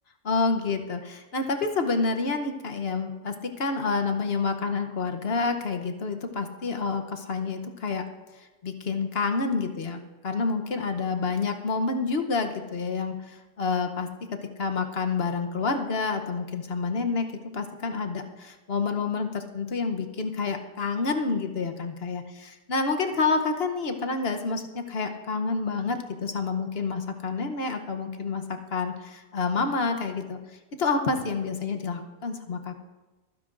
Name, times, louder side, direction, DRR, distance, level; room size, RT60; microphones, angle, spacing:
voice 1, 0.2-8.0 8.4-10.0 10.2-14.1 14.6-17.3 17.5-28.4 28.7-30.4 30.8-32.8, left 4 dB, 50° left, 6 dB, 1.0 m, -28 dB
24.0 x 9.9 x 2.5 m, 1.1 s
omnidirectional pair, 1.4 m